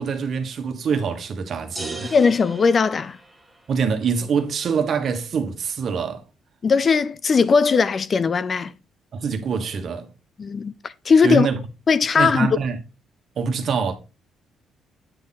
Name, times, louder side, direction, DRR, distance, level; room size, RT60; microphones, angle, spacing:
voice 1, 0.0-2.1 3.7-6.2 9.1-10.1 11.2-11.6 12.2-12.8 13.4-14.0, right 6 dB, 55° right, 1.4 m, -24 dB
sound 1, 1.8-3.8, right 2 dB, ahead, 1.9 m, -37 dB
voice 2, 2.1-3.2 6.6-8.7 10.4-11.5 11.9-12.5, left 5 dB, 40° left, 0.5 m, -19 dB
8.9 x 3.7 x 4.2 m
cardioid pair, 90°, 0 cm